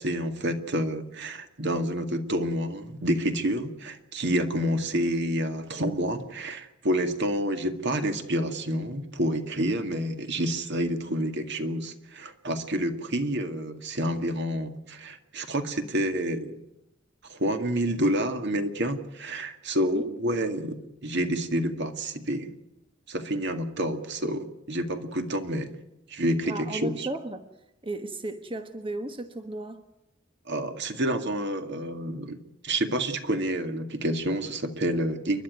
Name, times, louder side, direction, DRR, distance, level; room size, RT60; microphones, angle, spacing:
voice 1, 0.0-16.6 17.2-22.5 23.1-25.7 26.1-27.1 30.5-32.4 32.6-35.4, right 1 dB, 60° right, 6 dB, 2.1 m, -28 dB
voice 2, 26.5-27.5 27.8-29.8, right 2 dB, 25° right, 7 dB, 1.2 m, -35 dB
29.5 x 11.5 x 9.3 m, 0.88 s
head